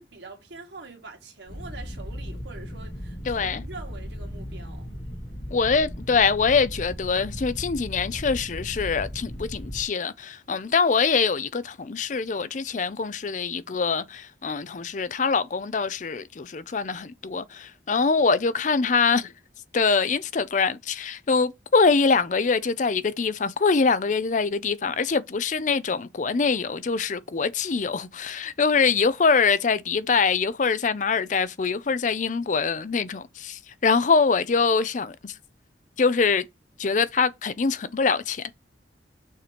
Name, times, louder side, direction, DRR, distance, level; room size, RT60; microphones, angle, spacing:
voice 1, 0.0-4.9, right 3 dB, 80° right, 1.9 m, -44 dB
sound 1, 1.5-9.8, equal, 80° left, 1.7 m, -37 dB
voice 2, 3.3-3.6 5.5-19.3 19.7-35.3 36.0-36.5 36.8-38.5, left 5 dB, 45° left, 0.5 m, -24 dB
6.3 x 3.0 x 5.0 m
head